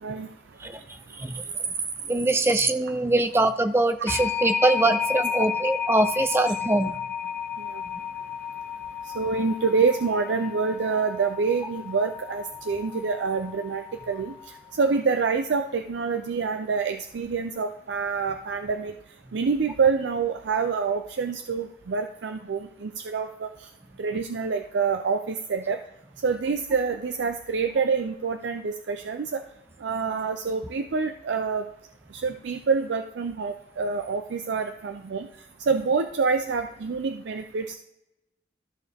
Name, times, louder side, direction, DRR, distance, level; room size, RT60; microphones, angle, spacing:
voice 1, 0.6-1.7 2.1-7.0 7.9-8.0, right 2 dB, 15° right, 10 dB, 0.4 m, -24 dB
sound 1, 4.1-14.7, left 7 dB, 15° left, 0.8 m, -32 dB
voice 2, 9.1-14.3 14.8-18.9 19.3-23.5 24.0-25.8 26.2-29.4 29.8-31.6 32.1-35.3 35.7-37.8, right 5 dB, 85° right, 7 dB, 0.5 m, -26 dB
13.5 x 4.8 x 3.4 m, 0.88 s
head